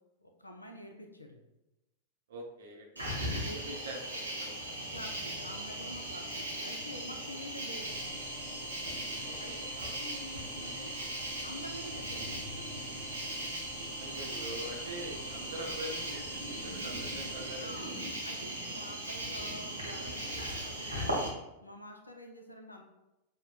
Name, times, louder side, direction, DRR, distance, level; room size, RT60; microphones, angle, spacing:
voice 1, 0.2-1.5 3.4-3.8 4.9-8.2 9.3-9.6 10.0-10.9 11.4-12.9 17.6-17.9 18.2-21.3 21.6-22.8, equal, 85° left, 4 dB, 0.4 m, -47 dB
voice 2, 2.3-2.9 3.2-3.3 3.6-4.7 7.2-7.4 9.2-10.0 14.0-17.8, right 1 dB, 60° right, 1 dB, 0.5 m, -44 dB
Cricket, 3.0-21.3, right 1 dB, 85° right, 0.8 m, -38 dB
sound 1, 7.7-17.7, left 2 dB, 5° left, 0.7 m, -51 dB
5.3 x 2.1 x 2.4 m, 0.96 s
figure-of-eight pair, 90°, 0 cm